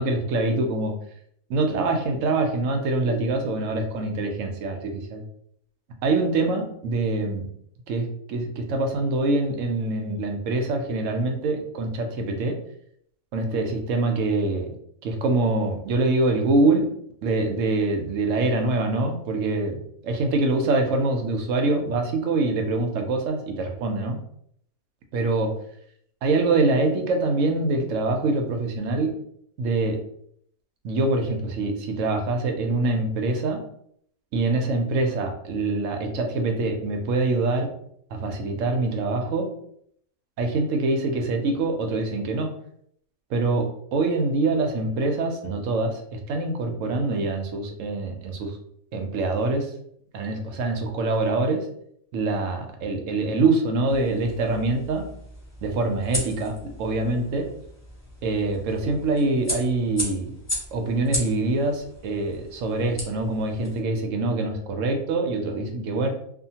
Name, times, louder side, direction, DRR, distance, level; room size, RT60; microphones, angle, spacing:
voice 1, 0.0-0.9 1.5-5.2 6.0-7.5 7.9-12.6 13.3-14.7 15.0-16.9 17.2-24.2 25.1-25.5 26.2-29.1 29.6-30.0 30.8-33.6 34.3-37.7 38.1-39.5 40.4-42.5 43.3-48.6 48.9-49.7 50.1-51.6 52.1-55.1 55.6-57.5 58.2-60.3 60.7-66.1, right 2 dB, 70° right, 4 dB, 0.9 m, -24 dB
sound 1, 53.9-63.8, left 1 dB, 25° left, 0.4 m, -36 dB
2.8 x 2.4 x 2.7 m, 0.67 s
omnidirectional pair, 1.5 m